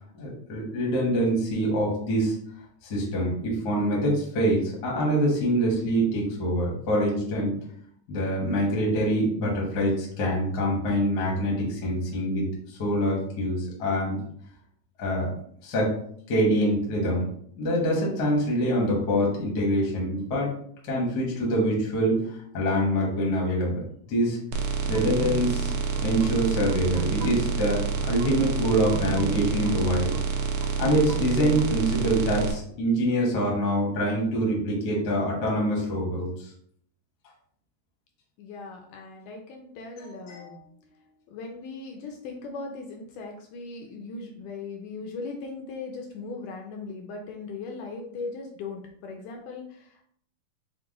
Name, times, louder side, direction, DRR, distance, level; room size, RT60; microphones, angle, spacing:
voice 1, 0.1-2.3 2.8-7.5 8.1-14.2 15.0-15.3 15.6-15.9 16.3-17.3 17.6-20.5 20.8-22.2 22.5-23.8 24.1-24.4 24.8-25.7 26.0-30.1 30.8-36.5 40.0-40.5, equal, 60° left, -3 dB, 1.0 m, -25 dB
sound 1, 24.5-32.5, right 5 dB, 80° right, 1.9 m, -28 dB
sound 2, 24.9-31.7, right 6 dB, 55° right, 1.3 m, -40 dB
voice 2, 38.4-40.6 41.3-50.0, left 3 dB, 80° left, 1 dB, 1.9 m, -38 dB
5.9 x 2.1 x 3.7 m, 0.64 s
omnidirectional pair, 3.9 m